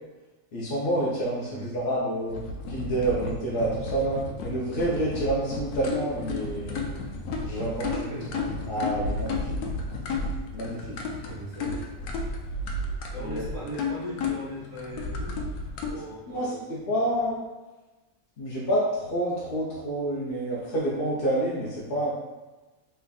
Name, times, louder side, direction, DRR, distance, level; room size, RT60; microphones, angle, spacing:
voice 1, 0.5-2.4 2.7-6.8 7.4-7.9 8.7-9.6 10.5-11.0 13.2-13.4 16.3-16.5 16.9-17.4 18.4-22.1, right 1 dB, 55° left, -6 dB, 0.6 m, -28 dB
sound 1, 2.3-15.9, left 3 dB, 85° left, 1.1 m, -32 dB
voice 2, 7.6-8.4 11.2-12.2 13.1-15.5 15.8-16.9, equal, 35° right, -8 dB, 0.6 m, -40 dB
3.7 x 3.4 x 2.3 m, 1.1 s
omnidirectional pair, 1.5 m